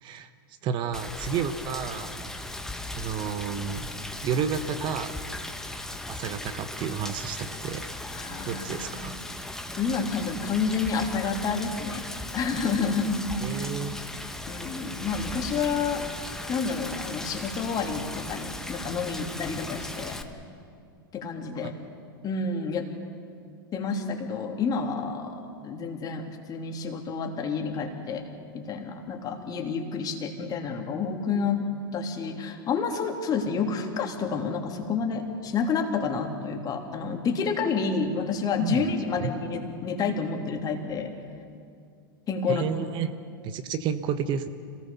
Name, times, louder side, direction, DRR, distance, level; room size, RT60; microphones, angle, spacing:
voice 1, 0.6-2.2 2.9-3.9 4.2-5.3 6.1-7.9 8.4-9.2 13.4-13.9 21.6-21.7 38.6-38.8 39.2-39.3 42.5-43.1 43.4-44.5, right 7 dB, 40° right, 10 dB, 1.2 m, -31 dB
Rain, 0.9-20.2, left 1 dB, 5° left, 1.5 m, -37 dB
voice 2, 8.1-9.0 9.8-12.1 12.3-13.2 14.5-16.0 16.5-20.2 21.1-21.7 22.2-22.9 23.7-28.2 28.5-31.7 31.9-41.1 42.3-42.9, left 5 dB, 35° left, 3 dB, 3.1 m, -29 dB
27.0 x 18.5 x 7.0 m, 2.3 s
hypercardioid pair, 100°, 12 cm